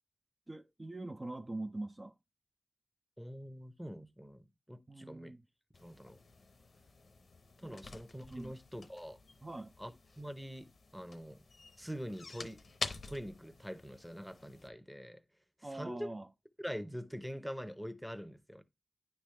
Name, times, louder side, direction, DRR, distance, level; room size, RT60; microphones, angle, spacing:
voice 1, 0.5-2.1 4.9-5.4 7.6-7.8 8.3-8.5 9.4-9.7 15.6-16.3, right 2 dB, 40° right, 0.4 m, -43 dB
voice 2, 3.2-5.3 5.8-6.2 7.6-9.2 9.8-11.4 11.8-15.2 15.6-16.1 16.6-18.6, equal, 5° right, 0.7 m, -44 dB
sound 1, 5.7-14.7, left 3 dB, 80° left, 0.6 m, -48 dB
9.5 x 3.4 x 3.2 m
cardioid pair, 40°, 0 cm